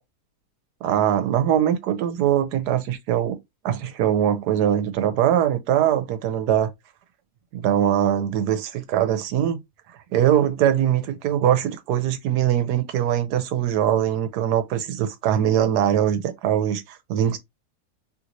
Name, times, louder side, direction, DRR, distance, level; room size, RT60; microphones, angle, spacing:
voice 1, 0.8-3.4 3.6-6.7 7.5-9.6 10.1-17.4, right 10 dB, 85° right, 1.2 m, -22 dB
3.0 x 2.6 x 2.9 m
omnidirectional pair, 1.7 m